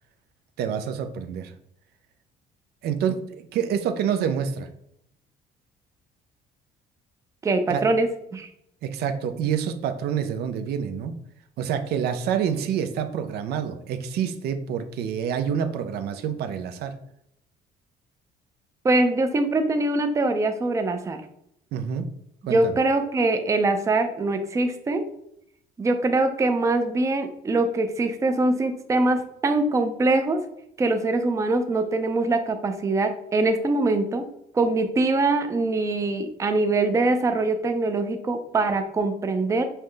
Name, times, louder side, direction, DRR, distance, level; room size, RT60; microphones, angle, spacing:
voice 1, 0.6-1.5 2.8-4.7 7.7-7.8 8.8-11.2 11.6-16.9 21.7-22.1 22.5-22.7, right 8 dB, 70° right, 8 dB, 0.5 m, -27 dB
voice 2, 7.4-8.5 18.8-21.2 22.5-25.0 25.8-30.4 30.8-34.3 34.5-39.6, right 2 dB, 20° right, 7 dB, 0.4 m, -23 dB
5.6 x 2.1 x 3.3 m, 0.75 s
cardioid pair, 110°, 17 cm